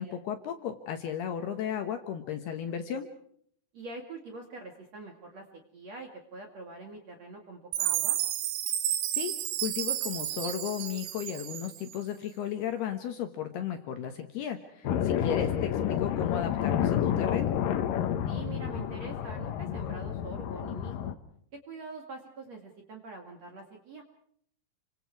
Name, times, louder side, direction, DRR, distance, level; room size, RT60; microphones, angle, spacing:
voice 1, 0.0-3.1 9.1-9.3 9.6-17.5, left 9 dB, 70° left, 6 dB, 2.7 m, -35 dB
voice 2, 3.7-5.4 5.7-8.2 15.0-15.6 18.3-21.1 21.5-24.0, right 3 dB, 45° right, 3 dB, 2.4 m, -44 dB
Chime, 7.7-12.0, right 12 dB, 90° right, 4.1 m, -31 dB
sound 1, 14.8-21.1, left 9 dB, 90° left, 1.9 m, -29 dB
29.5 x 25.0 x 4.7 m, 0.64 s
omnidirectional pair, 5.8 m